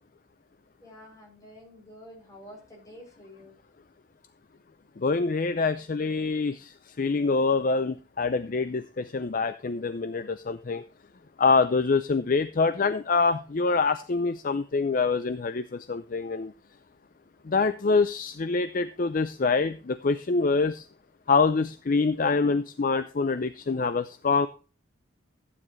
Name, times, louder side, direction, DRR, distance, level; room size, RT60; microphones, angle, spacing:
voice 1, 0.8-3.5, equal, 20° left, -2 dB, 7.3 m, -49 dB
voice 2, 5.0-10.8 11.4-16.5 17.4-20.9 21.3-24.5, left 4 dB, 45° left, 12 dB, 0.5 m, -25 dB
14.5 x 9.7 x 3.2 m, 0.34 s
head